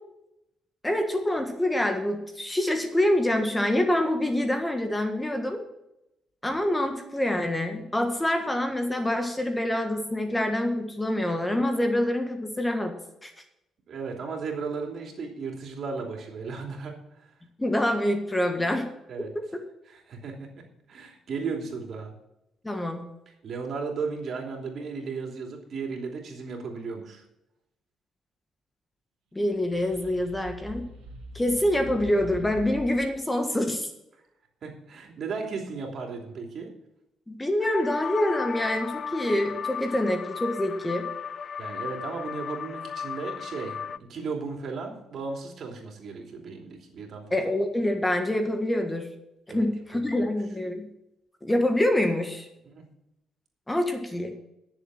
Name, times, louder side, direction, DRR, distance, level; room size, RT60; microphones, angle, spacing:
voice 1, 0.8-5.6 6.4-12.9 13.2-13.3 17.6-18.9 19.3-19.4 22.6-23.0 29.3-30.8 31.3-33.9 37.3-41.1 47.3-49.1 49.5-50.9 51.4-52.5 53.7-54.3, left 1 dB, 10° left, 5 dB, 1.6 m, -26 dB
voice 2, 13.9-16.9 19.1-19.3 19.9-20.6 20.9-22.1 23.4-27.2 34.6-36.7 41.6-43.8 44.1-47.4 49.5-49.7 49.9-50.2 52.6-52.8, right 4 dB, 60° right, 2 dB, 3.0 m, -35 dB
sound 1, 29.5-33.1, right 1 dB, 85° right, 2.4 m, -42 dB
sound 2, 37.6-44.0, left 6 dB, 50° left, 0.5 m, -35 dB
10.5 x 7.2 x 7.5 m, 0.86 s
cardioid pair, 90°, 0 cm